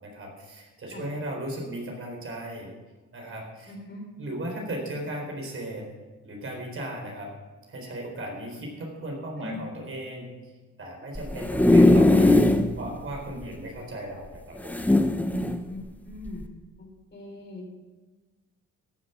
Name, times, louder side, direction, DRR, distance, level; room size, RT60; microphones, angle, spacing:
voice 1, 0.0-2.7 3.1-3.7 4.2-5.9 6.2-7.3 7.7-10.3 10.8-12.4 12.8-14.9, right 1 dB, 45° right, 0 dB, 4.1 m, -36 dB
voice 2, 3.7-4.0 9.4-9.6 11.7-11.9 15.7-16.4 17.1-17.8, left 2 dB, 35° left, 0 dB, 4.1 m, -40 dB
sound 1, 11.1-12.7 13.1-13.2 13.4-13.5 14.6-15.6 16.3-16.4, left 2 dB, 5° left, 1.0 m, -19 dB
14.5 x 7.8 x 5.8 m, 1.3 s
cardioid pair, 90°, 30 cm